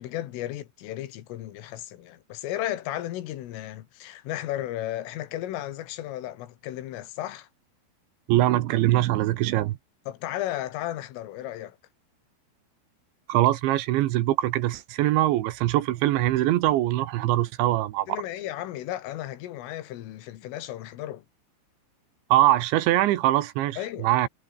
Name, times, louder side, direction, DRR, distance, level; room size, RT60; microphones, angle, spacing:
voice 1, 0.0-7.5 10.1-11.8 18.1-21.3 23.8-24.1, left 13 dB, 80° left, 4.2 m, -34 dB
voice 2, 8.3-9.8 13.3-18.1 22.3-24.3, right 15 dB, 75° right, 3.2 m, -22 dB
omnidirectional pair, 5.8 m